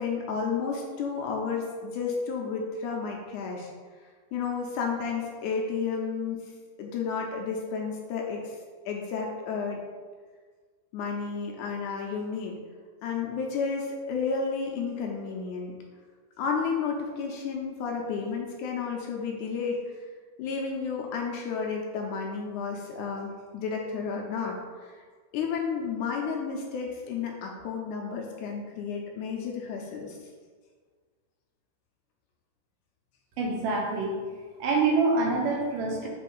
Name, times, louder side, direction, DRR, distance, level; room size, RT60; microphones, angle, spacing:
voice 1, 0.0-3.7 4.3-6.4 6.8-8.5 8.9-9.8 10.9-12.6 13.0-15.7 16.4-20.0 20.4-24.6 24.8-25.0 25.3-30.2 36.0-36.1, left 5 dB, 75° left, 0 dB, 2.0 m, -32 dB
voice 2, 33.4-34.2 34.6-36.1, right 3 dB, 75° right, 0 dB, 2.5 m, -26 dB
5.5 x 3.4 x 5.3 m, 1.5 s
omnidirectional pair, 3.9 m